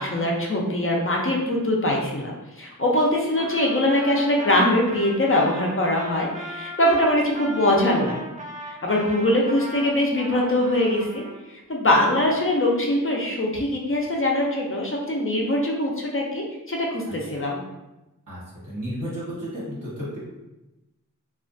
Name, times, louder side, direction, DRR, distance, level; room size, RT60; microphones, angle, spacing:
voice 1, 0.0-8.2 8.8-11.2 11.7-17.6, left 1 dB, 40° left, -2 dB, 0.5 m, -22 dB
Trumpet, 3.4-11.4, right 1 dB, 25° right, 0.4 m, -37 dB
voice 2, 18.3-20.2, equal, 70° right, -9 dB, 1.3 m, -33 dB
2.4 x 2.1 x 2.5 m, 1.0 s
wide cardioid pair, 45°, 33 cm